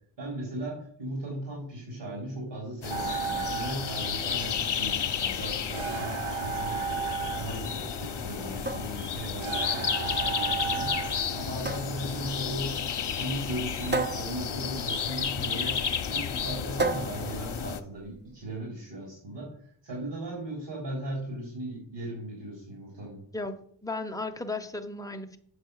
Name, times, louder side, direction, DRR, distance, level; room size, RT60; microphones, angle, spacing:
voice 1, 0.2-7.0 7.4-10.9 11.3-12.8 13.1-19.5 19.8-23.2, right 1 dB, 65° right, -3 dB, 4.0 m, -37 dB
sound 1, 2.8-17.8, left 7 dB, 60° left, 0.9 m, -32 dB
sound 2, 2.9-12.9, right 6 dB, 80° right, 0.8 m, -36 dB
sound 3, 8.7-18.4, right 3 dB, 20° right, 0.8 m, -36 dB
voice 2, 23.3-25.4, left 2 dB, 5° left, 5 dB, 0.9 m, -35 dB
8.1 x 6.7 x 6.6 m, 0.63 s
wide cardioid pair, 95°, 47 cm